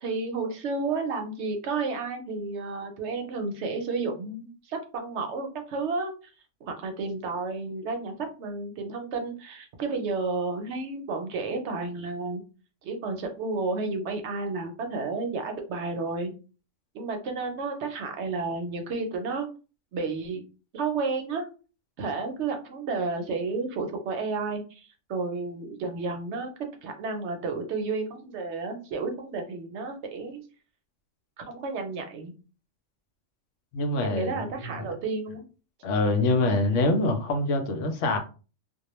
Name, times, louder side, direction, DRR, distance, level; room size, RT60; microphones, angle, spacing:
voice 1, 0.0-6.1 6.6-12.4 12.8-16.3 16.9-19.5 19.9-20.4 20.7-21.5 22.0-26.5 26.8-30.4 31.4-32.3 34.0-35.4, right 3 dB, 70° right, 0.8 m, -31 dB
voice 2, 33.7-34.7 35.8-38.2, left 2 dB, 75° left, 0.9 m, -25 dB
2.2 x 2.2 x 2.9 m
omnidirectional pair, 1.3 m